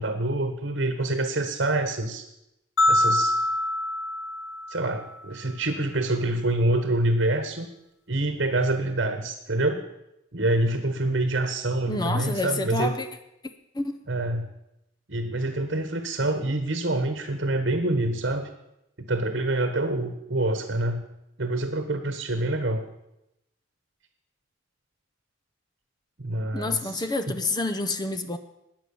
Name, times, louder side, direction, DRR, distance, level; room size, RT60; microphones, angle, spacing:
voice 1, 0.0-2.2 2.9-3.4 4.7-7.7 8.1-9.8 10.3-12.9 14.1-14.5 15.1-18.5 19.0-21.0 21.4-22.8 26.2-27.0, right 2 dB, 55° right, 8 dB, 1.3 m, -26 dB
sound 1, 2.8-5.1, left 1 dB, 75° left, 0.9 m, -25 dB
voice 2, 11.9-13.1 13.7-14.0 26.5-28.4, left 2 dB, 20° left, 9 dB, 0.8 m, -28 dB
20.5 x 7.9 x 7.0 m, 0.88 s
head